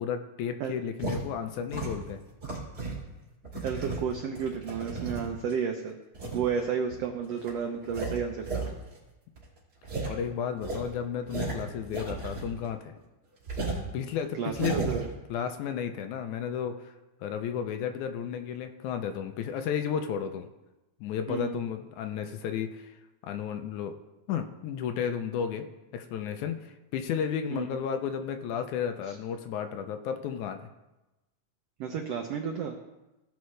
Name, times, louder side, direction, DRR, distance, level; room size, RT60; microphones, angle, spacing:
voice 1, 0.0-2.2 10.1-12.9 13.9-14.8 15.3-16.9 17.2-20.5 21.0-22.9 23.2-23.9 24.3-25.7 25.9-30.7, left 8 dB, 80° left, 7 dB, 1.9 m, -33 dB
sound 1, 1.0-1.2 1.7-3.0 3.4-5.5 6.1-6.5 6.9-7.0 7.4-7.5 7.8-8.7 8.9-9.0 9.4-9.5 9.8-10.1 10.6-12.7 12.9-13.0 13.5-13.8 14.4-15.1, right 3 dB, 30° right, 3.4 m, -34 dB
voice 2, 3.6-6.0 6.3-8.6 14.4-15.0 21.3-21.6 27.5-27.7 29.1-29.2 31.8-32.7, right 7 dB, 90° right, 4 dB, 1.4 m, -32 dB
17.0 x 5.8 x 3.2 m, 1.0 s
omnidirectional pair, 3.7 m